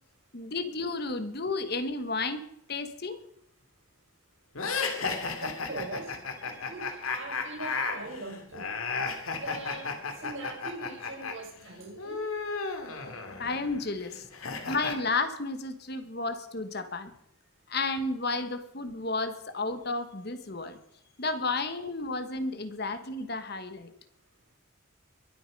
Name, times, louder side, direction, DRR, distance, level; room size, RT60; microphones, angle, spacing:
voice 1, 0.3-2.4 2.7-3.2 13.4-14.2 14.7-17.1 17.7-20.8 21.2-23.9, left 3 dB, 50° left, 10 dB, 1.3 m, -32 dB
sound 1, 4.6-11.3 11.6-15.0, left 4 dB, 85° left, 2.5 m, -34 dB
voice 2, 5.4-6.1 6.4-8.7 9.3-9.9 10.2-12.2, right 2 dB, 65° right, 2 dB, 5.7 m, -41 dB
22.5 x 8.7 x 5.3 m, 0.75 s
head